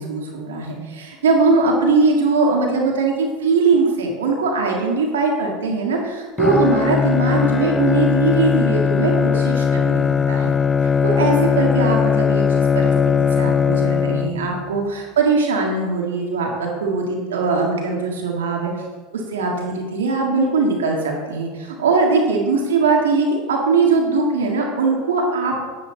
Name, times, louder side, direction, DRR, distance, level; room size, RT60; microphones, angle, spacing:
voice 1, 0.0-10.5 11.0-18.7 19.3-25.7, right 3 dB, 85° right, 0 dB, 1.8 m, -20 dB
Bowed string instrument, 6.4-14.7, left 6 dB, 25° left, 0.3 m, -19 dB
9.8 x 9.3 x 3.9 m, 1.3 s
hypercardioid pair, 90°, 0 cm